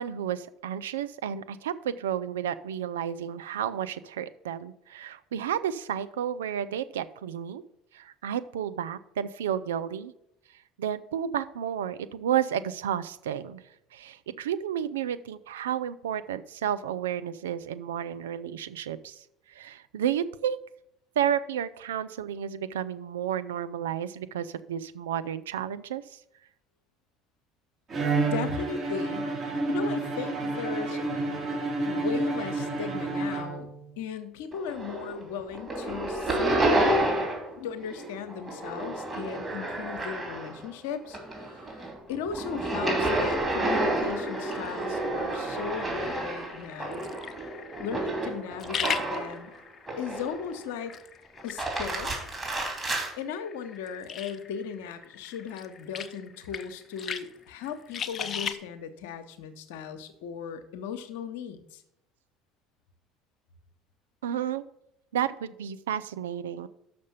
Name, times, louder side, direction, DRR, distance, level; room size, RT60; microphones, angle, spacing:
voice 1, 0.0-7.6 7.9-10.1 10.8-13.6 13.9-20.6 21.2-26.2 64.2-64.6 65.1-66.7, right 9 dB, 85° right, 13 dB, 0.4 m, -31 dB
Bowed string instrument, 27.9-33.9, right 3 dB, 45° right, 3.1 m, -30 dB
voice 2, 28.2-29.3 29.7-31.0 31.8-33.7 34.0-37.1 37.6-47.0 47.8-49.5 50.0-51.0 51.4-52.1 53.2-61.8, left 7 dB, 75° left, 9 dB, 0.8 m, -37 dB
sound 1, 34.5-35.2 35.5-37.5 37.8-40.7 41.0-49.4 49.9-50.5 51.4-53.1, right 1 dB, 20° right, 3.0 m, -30 dB
sound 2, 44.1-58.5, left 7 dB, 45° left, 0.6 m, -40 dB
6.5 x 5.2 x 7.1 m, 0.79 s
hypercardioid pair, 65°, 0 cm